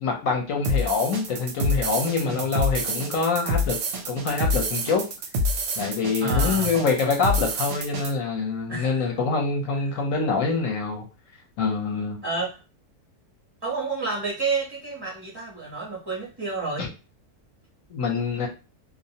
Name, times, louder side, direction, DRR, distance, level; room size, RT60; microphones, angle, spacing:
voice 1, 0.0-3.8 4.1-5.0 5.8-11.0 11.6-12.2 16.8-16.9 17.9-18.5, left 4 dB, 65° left, 2 dB, 0.9 m, -25 dB
sound 1, 0.6-8.1, left 1 dB, 65° right, 0.8 m, -27 dB
voice 2, 6.2-6.7 8.7-9.2 9.9-10.0 12.2-12.6 13.6-16.9, right 3 dB, 35° right, -5 dB, 0.4 m, -30 dB
2.5 x 2.0 x 2.7 m, 0.31 s
omnidirectional pair, 1.6 m